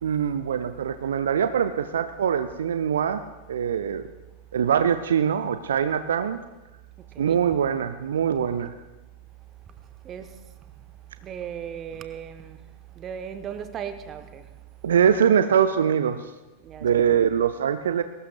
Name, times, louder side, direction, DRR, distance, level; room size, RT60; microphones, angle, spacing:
voice 1, 0.0-3.2 3.5-4.1 4.5-6.4 7.2-8.7 14.8-16.3 16.8-18.0, right 8 dB, 65° right, 0.5 m, -23 dB
voice 2, 7.0-7.4 10.0-10.4 11.2-12.6 12.9-14.5 16.6-17.2, right 8 dB, 30° right, 1.1 m, -37 dB
21.5 x 18.5 x 2.5 m
figure-of-eight pair, 90°, 0 cm